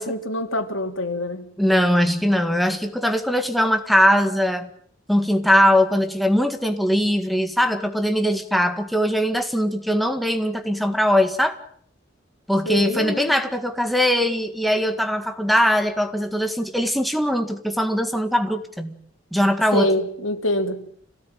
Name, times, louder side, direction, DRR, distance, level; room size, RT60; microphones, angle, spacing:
voice 1, 0.0-1.5 12.7-13.3 19.7-20.8, left 1 dB, 85° left, 2.9 m, -25 dB
voice 2, 1.6-4.7 5.1-11.6 12.5-19.0 19.3-19.9, equal, ahead, 1.8 m, -21 dB
26.5 x 17.5 x 9.1 m
head